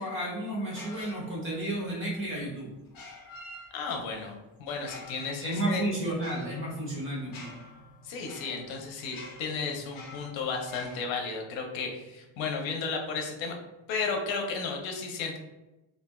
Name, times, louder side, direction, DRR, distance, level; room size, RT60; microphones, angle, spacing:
voice 1, 0.0-2.7 5.4-7.5, right 1 dB, 25° right, -5 dB, 1.2 m, -32 dB
sound 1, 0.7-1.7 2.9-4.1 4.7-11.0, left 2 dB, 50° left, 0.8 m, -48 dB
voice 2, 3.7-5.9 8.0-13.6 13.9-15.4, left 4 dB, 85° left, 2 dB, 0.7 m, -33 dB
sound 2, 5.0-14.8, equal, 85° right, 1.0 m, -55 dB
3.3 x 2.6 x 2.2 m, 1.0 s
cardioid pair, 130°, 44 cm